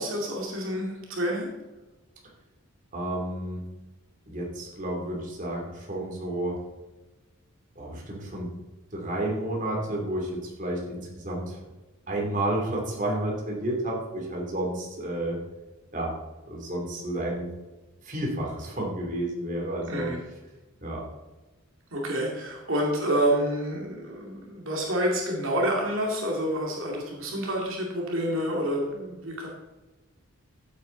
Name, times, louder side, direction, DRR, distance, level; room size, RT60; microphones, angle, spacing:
voice 1, 0.0-1.5 19.9-20.2 21.9-29.5, equal, 65° right, -2 dB, 2.4 m, -28 dB
voice 2, 2.9-3.6 4.3-6.6 7.7-8.5 8.9-11.6 12.1-15.4 15.9-16.1 16.5-17.5 18.0-20.1 20.8-21.0, right 1 dB, 35° right, -2 dB, 2.9 m, -31 dB
15.5 x 8.3 x 4.0 m, 1.1 s
head